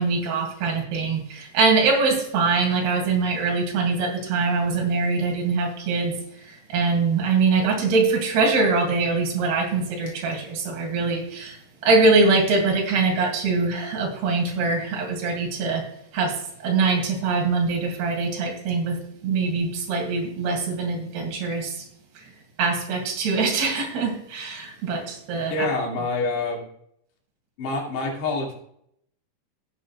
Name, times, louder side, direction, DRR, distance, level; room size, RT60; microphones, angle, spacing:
voice 1, 0.0-15.8 16.1-21.8 22.2-22.3 22.6-25.7, right 4 dB, 70° right, 0 dB, 4.4 m, -23 dB
voice 2, 25.5-26.7 27.6-28.6, left 3 dB, 85° left, -2 dB, 4.5 m, -26 dB
15.5 x 8.5 x 2.3 m, 0.71 s
omnidirectional pair, 4.8 m